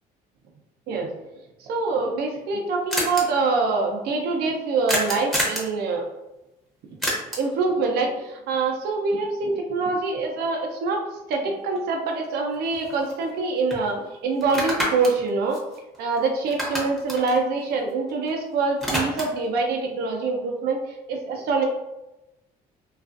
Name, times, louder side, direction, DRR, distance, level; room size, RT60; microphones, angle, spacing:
voice 1, 1.6-6.0 7.4-11.0 11.3-15.6 16.0-20.8 21.1-21.6, right 3 dB, 70° right, 1 dB, 0.5 m, -25 dB
sound 1, 2.2-2.3 2.5-2.6 2.9-3.2 4.9-5.7 7.0-7.6 11.8-11.9 12.2-13.4 13.7-13.8 14.4-16.2 16.5-18.3 18.6-19.5, equal, ahead, 0.7 m, -28 dB
2.3 x 2.3 x 2.4 m, 0.96 s
cardioid pair, 110°, 17 cm